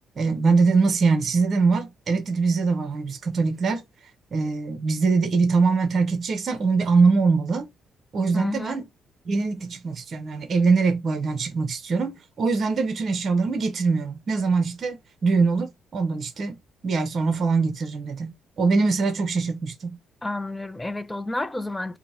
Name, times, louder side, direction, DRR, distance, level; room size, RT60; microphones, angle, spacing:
voice 1, 0.2-3.8 4.3-7.7 8.1-8.9 9.3-16.6 16.8-20.0, right 4 dB, 50° right, 0.7 m, -23 dB
voice 2, 8.3-8.8 20.2-22.0, left 2 dB, 15° left, 0.4 m, -30 dB
3.8 x 2.1 x 4.2 m
cardioid pair, 90°, 0 cm